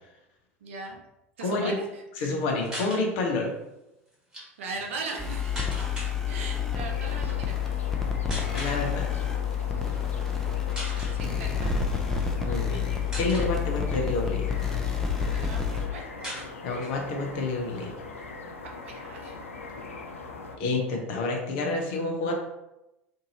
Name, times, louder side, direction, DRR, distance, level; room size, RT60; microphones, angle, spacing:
voice 1, 0.6-1.0 1.4-2.3 4.6-5.6 6.3-7.6 11.1-11.8 15.3-16.3 18.6-19.4, right 3 dB, 70° right, 1 dB, 0.6 m, -39 dB
voice 2, 1.4-1.8 2.2-3.5 8.5-9.1 12.3-12.9 13.1-14.5 16.6-17.9 20.6-22.3, left 3 dB, 60° left, 1 dB, 0.7 m, -29 dB
sound 1, 2.6-3.0 4.1-4.4 5.6-6.1 7.2-7.4 8.3-8.8 9.8-10.0 10.4-10.5 10.7-11.2 12.1-12.7 13.1-13.5 14.1-15.1 15.5-15.6 15.8-15.9 16.2-17.0 17.3-17.4 17.7-18.8, equal, 10° right, 1.3 m, -39 dB
sound 2, 5.2-15.9, left 7 dB, 5° left, 0.5 m, -29 dB
sound 3, 6.7-20.6, left 3 dB, 85° left, 0.3 m, -41 dB
2.7 x 2.6 x 2.8 m, 0.93 s
figure-of-eight pair, 75°, 7 cm